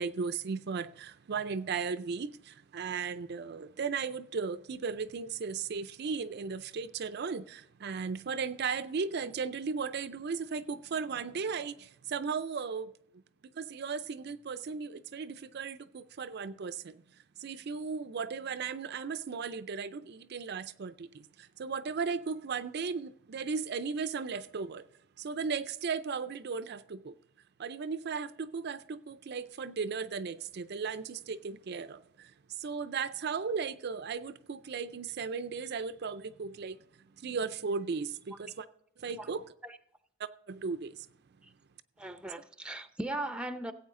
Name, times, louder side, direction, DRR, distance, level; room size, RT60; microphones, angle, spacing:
voice 1, 0.0-12.9 13.5-17.0 17.4-24.8 25.2-27.2 27.6-36.8 37.2-38.7 39.0-39.5 40.2-41.1, right 5 dB, 50° right, 0.4 m, -36 dB
voice 2, 42.0-43.7, right 1 dB, 5° right, 0.6 m, -38 dB
16.0 x 8.4 x 3.7 m
head